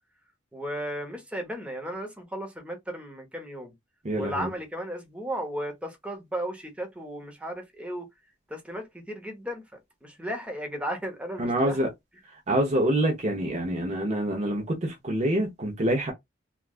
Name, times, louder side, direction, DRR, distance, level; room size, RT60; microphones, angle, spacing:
voice 1, 0.5-3.7 4.2-8.1 8.5-9.6 10.0-11.8, equal, 5° right, 0.9 m, -35 dB
voice 2, 4.0-4.5 11.4-11.9 12.5-16.1, right 1 dB, 35° right, 0.7 m, -26 dB
3.3 x 2.3 x 2.4 m
head